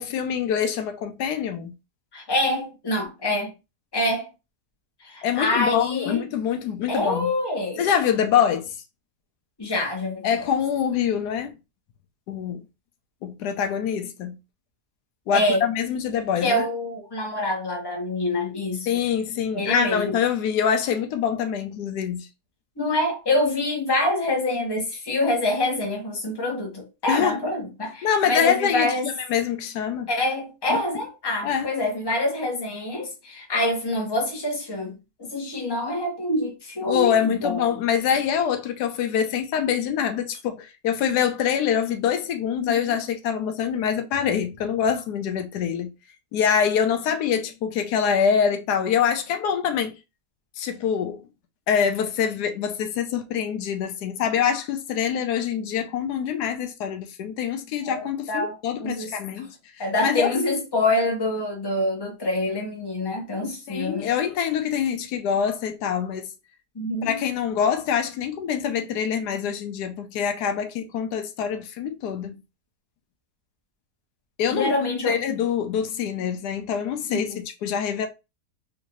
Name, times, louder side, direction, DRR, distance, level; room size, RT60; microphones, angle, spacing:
voice 1, 0.0-1.7 5.2-7.3 7.8-8.8 10.2-11.5 12.3-12.6 13.2-14.4 15.3-16.6 18.9-22.3 27.1-27.4 28.0-30.1 30.7-30.8 31.4-31.7 36.9-45.9 46.3-49.9 50.6-51.2 51.7-59.6 60.0-60.3 63.7-66.3 67.0-72.4 74.4-74.7 75.0-78.1, left 8 dB, 85° left, 1.2 m, -25 dB
voice 2, 2.1-3.5 3.9-4.3 5.0-6.2 6.9-7.9 9.6-10.3 15.3-15.7 16.4-19.0 19.5-20.1 22.8-29.1 30.1-37.7 42.6-43.0 57.9-59.1 59.8-64.1 66.7-67.2 74.5-75.2 77.1-77.4, left 1 dB, 20° left, 0.9 m, -26 dB
3.7 x 2.6 x 2.9 m
omnidirectional pair, 1.7 m